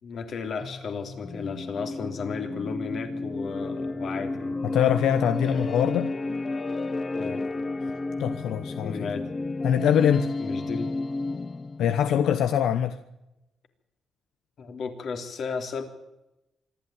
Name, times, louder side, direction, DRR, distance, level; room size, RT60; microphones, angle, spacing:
voice 1, 0.0-4.6 5.4-5.7 7.1-7.4 8.8-9.3 10.4-10.9 14.6-15.8, left 5 dB, 55° left, 3.5 m, -34 dB
sound 1, 0.6-12.0, left 2 dB, 25° left, 1.0 m, -32 dB
voice 2, 4.6-6.1 8.2-9.1 9.6-10.3 11.8-13.0, left 9 dB, 85° left, 1.1 m, -23 dB
26.0 x 12.0 x 9.0 m
cardioid pair, 130°, 0 cm